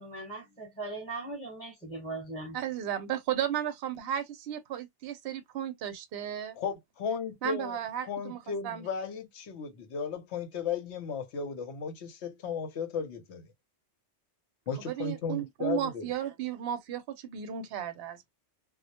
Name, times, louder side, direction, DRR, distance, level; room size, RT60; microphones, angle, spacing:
voice 1, 0.0-2.6, right 2 dB, 5° left, 1.0 m, -39 dB
voice 2, 2.5-6.6 7.4-8.8 14.7-18.3, right 10 dB, 65° right, 0.7 m, -34 dB
voice 3, 6.6-7.8 8.1-13.5 14.7-16.1, left 6 dB, 70° left, 0.9 m, -35 dB
2.2 x 2.1 x 2.7 m
omnidirectional pair, 1.2 m